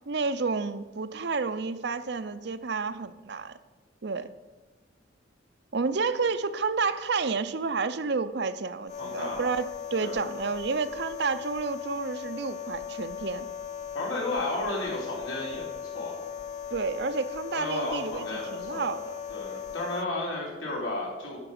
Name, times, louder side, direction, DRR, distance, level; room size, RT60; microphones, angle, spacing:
voice 1, 0.1-3.5 4.0-4.3 5.7-9.7 9.9-13.5 16.7-19.2 19.5-19.6, right 4 dB, 60° right, 12 dB, 0.6 m, -30 dB
sound 1, 8.9-20.0, left 8 dB, 40° left, 0.3 m, -38 dB
voice 2, 9.0-9.4 10.0-10.2 13.9-15.7 15.9-16.2 17.5-19.0 19.3-21.4, left 2 dB, 85° left, -3 dB, 3.7 m, -33 dB
10.5 x 6.0 x 7.1 m, 1.2 s
head